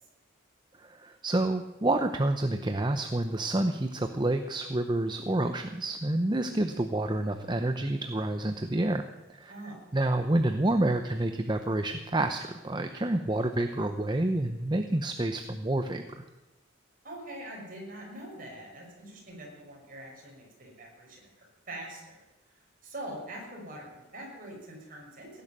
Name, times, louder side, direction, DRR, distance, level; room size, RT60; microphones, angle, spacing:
voice 1, 0.8-9.0 9.3-16.2, right 1 dB, 20° right, 7 dB, 0.7 m, -28 dB
voice 2, 9.5-9.8 17.0-22.2 22.8-25.4, right 1 dB, 40° right, -1 dB, 6.1 m, -43 dB
17.5 x 11.0 x 7.5 m, 1.1 s
head